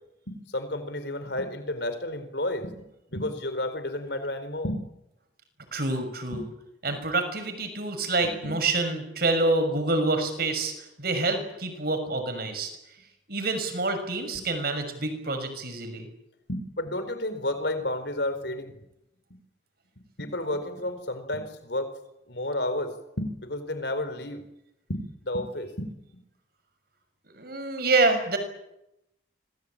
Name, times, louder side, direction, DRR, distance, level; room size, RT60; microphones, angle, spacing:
voice 1, 0.3-2.7 3.1-4.8 6.3-6.4 8.2-8.6 14.3-14.4 16.5-18.7 20.2-21.9 22.3-22.9 23.2-24.4 24.9-25.9, left 1 dB, 65° left, 10 dB, 4.4 m, -31 dB
voice 2, 5.7-6.4 6.8-10.7 11.0-12.7 13.3-16.1 27.3-28.4, right 2 dB, 55° right, 7 dB, 6.2 m, -27 dB
26.5 x 20.5 x 8.9 m, 0.83 s
head